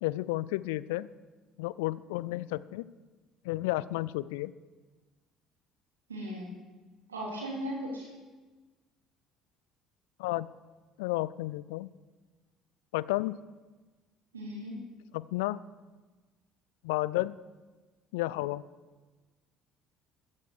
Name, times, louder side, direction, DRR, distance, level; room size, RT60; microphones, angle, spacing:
voice 1, 0.0-1.1 1.6-2.9 3.4-4.5 10.2-10.5 11.0-11.9 12.9-13.4 15.1-15.6 16.8-17.3 18.1-18.6, left 18 dB, 70° left, 19 dB, 0.3 m, -32 dB
voice 2, 6.1-6.5 7.1-8.1 14.3-14.8, equal, 85° right, -3 dB, 2.8 m, -37 dB
14.5 x 9.8 x 4.8 m, 1.3 s
figure-of-eight pair, 55°, 0 cm